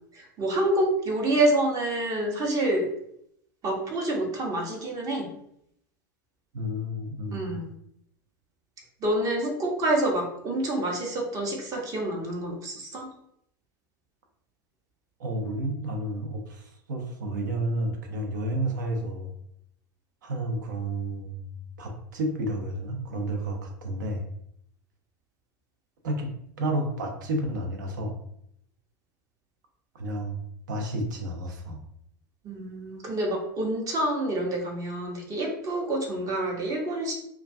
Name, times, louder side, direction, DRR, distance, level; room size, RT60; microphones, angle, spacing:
voice 1, 0.1-2.9 3.6-5.3 7.3-7.7 9.0-13.1 32.4-37.1, right 1 dB, 35° right, 0 dB, 0.8 m, -27 dB
voice 2, 6.5-7.6 15.2-19.3 20.2-21.4 21.8-24.2 26.0-26.3 26.6-28.2 29.9-30.4 30.7-31.8, right 1 dB, 65° right, 3 dB, 0.6 m, -31 dB
2.3 x 2.2 x 2.5 m, 0.72 s
figure-of-eight pair, 85°, 11 cm